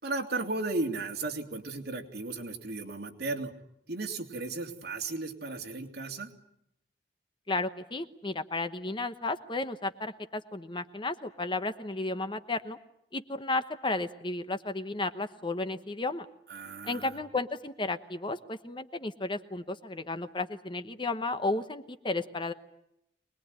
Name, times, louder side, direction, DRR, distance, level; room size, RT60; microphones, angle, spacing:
voice 1, 0.0-3.5 3.9-6.3 16.5-17.1, right 3 dB, 60° right, 2 dB, 3.1 m, -35 dB
voice 2, 7.5-12.8 13.1-16.3 16.8-22.5, left 2 dB, 25° left, 10 dB, 1.0 m, -33 dB
24.5 x 20.5 x 9.8 m, 0.80 s
head